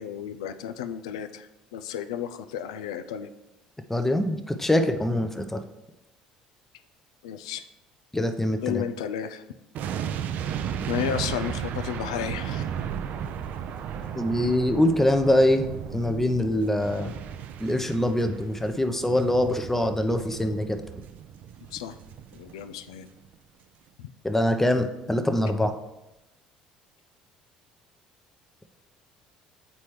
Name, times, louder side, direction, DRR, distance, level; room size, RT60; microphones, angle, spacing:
voice 1, 0.0-3.3 7.2-7.6 8.6-9.4 10.9-12.7 21.7-22.0 22.3-23.1 24.0-24.1, left 9 dB, 80° left, 10 dB, 0.3 m, -33 dB
voice 2, 3.9-5.6 8.1-8.8 14.2-17.1 17.6-20.8 24.2-25.7, left 1 dB, 10° left, 6 dB, 0.7 m, -24 dB
sound 1, 9.7-22.9 23.2-23.3, right 8 dB, 60° right, 0.4 m, -35 dB
8.4 x 4.3 x 3.2 m, 0.95 s
hypercardioid pair, 65°, 3 cm